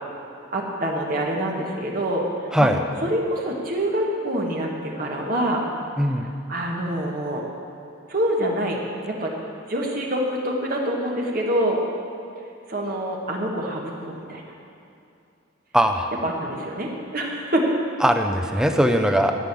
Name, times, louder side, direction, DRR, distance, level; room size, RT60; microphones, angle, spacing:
voice 1, 0.5-2.2 2.6-2.7 3.0-5.6 6.5-7.4 8.1-8.8 9.1-9.3 9.7-11.8 12.7-14.4 16.2-17.7, right 1 dB, 45° right, -2 dB, 1.6 m, -25 dB
voice 2, 6.0-6.3 15.7-16.1 18.0-19.3, equal, 5° right, 5 dB, 0.7 m, -20 dB
14.0 x 6.6 x 9.8 m, 2.6 s
head